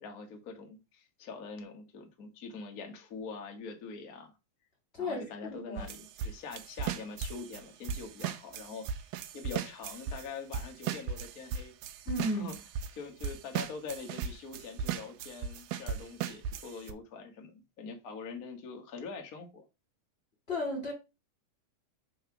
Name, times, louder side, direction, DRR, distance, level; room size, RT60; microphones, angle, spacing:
voice 1, 0.0-4.3 5.0-9.1 9.3-11.7 12.2-12.5 12.9-19.6, left 4 dB, 90° left, 0.7 m, -44 dB
voice 2, 4.9-5.9 12.1-12.5 20.5-20.9, left 1 dB, 20° left, 2.1 m, -34 dB
sound 1, 5.8-10.3 10.5-12.9 13.2-16.9, right 7 dB, 80° right, 1.9 m, -37 dB
4.9 x 4.3 x 5.8 m
omnidirectional pair, 3.8 m